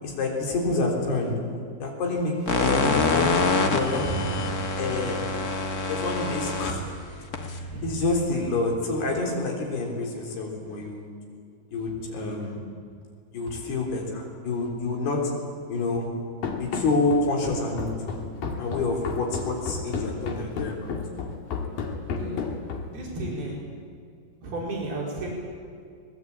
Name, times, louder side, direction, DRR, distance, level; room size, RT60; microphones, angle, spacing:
voice 1, 0.0-1.4 1.8-3.3 3.7-4.1 4.8-5.3 5.8-6.8 7.4-11.1 11.7-12.6 13.3-15.3 15.7-16.1 16.6-17.9 18.6-20.9, left 3 dB, 85° left, 0 dB, 5.9 m, -28 dB
sound 1, 2.5-8.5, left 3 dB, 50° left, 1.1 m, -27 dB
voice 2, 4.0-4.5 7.7-7.9 22.2-22.4 22.9-23.6 24.4-25.3, right 2 dB, 75° right, -3 dB, 6.1 m, -33 dB
Run, 16.4-23.1, left 5 dB, 65° left, 3.8 m, -32 dB
24.0 x 20.0 x 8.8 m, 2.2 s
omnidirectional pair, 4.5 m